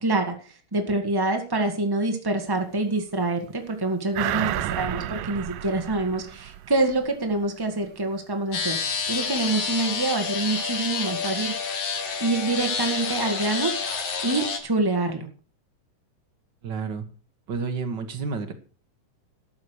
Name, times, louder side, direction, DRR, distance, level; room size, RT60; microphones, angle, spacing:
voice 1, 0.0-8.8 9.1-11.5 12.2-15.3, right 2 dB, 25° right, 4 dB, 0.4 m, -26 dB
sound 1, 4.1-7.1 7.4-7.5, right 13 dB, 85° right, 2.4 m, -31 dB
sound 2, 8.5-14.6, left 5 dB, 50° left, 2.8 m, -29 dB
voice 2, 16.6-17.0 17.5-18.5, right 5 dB, 55° right, 8 dB, 1.2 m, -30 dB
12.5 x 8.5 x 6.4 m, 0.37 s
omnidirectional pair, 3.8 m